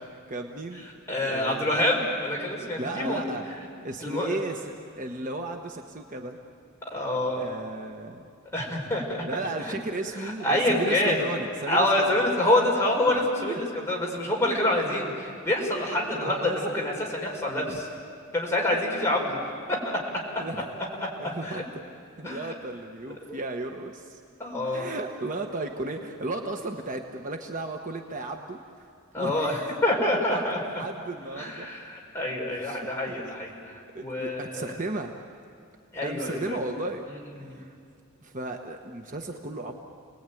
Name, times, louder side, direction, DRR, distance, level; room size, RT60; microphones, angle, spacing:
voice 1, 0.0-0.9 1.3-1.8 2.8-3.4 3.8-6.4 7.4-8.2 9.3-12.3 13.4-13.7 16.1-16.8 17.6-17.8 20.4-20.7 21.2-21.8 22.2-24.2 24.6-28.9 29.2-29.8 30.3-31.7 32.6-33.2 33.9-35.1 36.0-37.0 37.4-37.8 38.2-39.7, right 2 dB, 35° right, 3 dB, 1.2 m, -35 dB
voice 2, 1.1-3.2 4.0-4.4 6.9-7.4 8.5-9.2 10.4-11.2 11.7-17.9 18.3-19.4 21.4-21.6 22.2-22.5 23.2-23.4 24.4-24.9 29.1-30.6 31.4-34.7 35.9-36.6 37.4-37.6, left 1 dB, 10° left, -3 dB, 5.0 m, -26 dB
30.0 x 20.0 x 9.2 m, 2.3 s
head